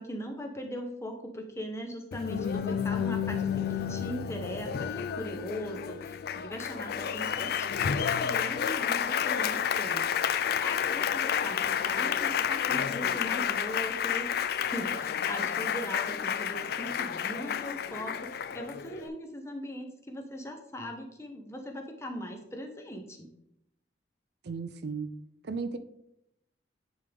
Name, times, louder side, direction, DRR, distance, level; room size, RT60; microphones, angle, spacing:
voice 1, 0.0-10.3 10.6-23.3, equal, 15° left, 3 dB, 0.7 m, -40 dB
Applause, 2.1-19.1, left 8 dB, 55° left, 0.3 m, -30 dB
voice 2, 24.4-25.1 25.4-25.8, right 4 dB, 60° right, 11 dB, 0.4 m, -35 dB
9.6 x 3.6 x 3.5 m, 0.80 s
head